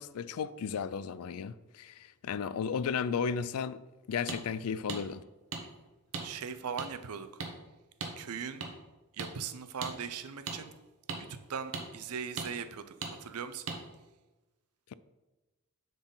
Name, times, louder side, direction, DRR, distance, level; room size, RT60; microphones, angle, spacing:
voice 1, 0.0-3.8 4.1-5.2, left 6 dB, 75° left, 0.4 m, -34 dB
sound 1, 4.3-4.4 4.9-5.0 5.5-5.6 6.1-6.3 6.8-6.9 7.4-7.5 8.0-8.1 8.6-8.7 9.2-9.3 9.8-9.9 10.5-10.6 11.1-11.2 11.7-11.9 12.4-12.5 13.0-13.1 13.7-13.8, right 4 dB, 65° right, 1.0 m, -37 dB
voice 2, 6.2-7.3 8.2-8.7 9.1-10.7 11.3-13.7, right 6 dB, 85° right, 0.6 m, -39 dB
10.0 x 4.0 x 3.9 m
head